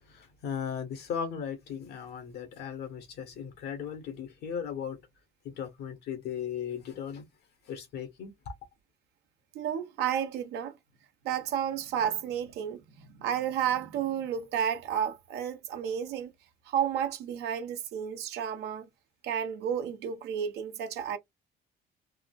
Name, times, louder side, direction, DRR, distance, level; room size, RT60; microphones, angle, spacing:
voice 1, 0.0-5.0 5.4-7.2 7.7-8.5, left 7 dB, 75° left, 1.1 m, -37 dB
voice 2, 9.5-10.7 11.2-16.3 16.7-18.9 19.2-21.2, right 9 dB, 80° right, 0.9 m, -31 dB
3.6 x 2.6 x 2.2 m
cardioid pair, 110°, 17 cm